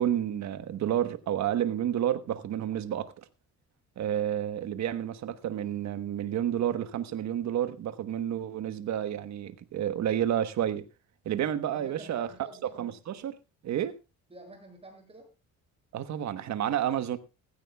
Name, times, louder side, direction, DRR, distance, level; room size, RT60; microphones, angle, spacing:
voice 1, 0.0-3.1 4.0-10.8 11.2-12.3 12.8-13.4 13.6-13.9 15.9-17.2, right 10 dB, 65° right, 1.2 m, -30 dB
voice 2, 11.7-12.7 14.3-15.3, right 2 dB, 20° right, 7.0 m, -48 dB
17.0 x 15.0 x 2.3 m
cardioid pair, 115°, 30 cm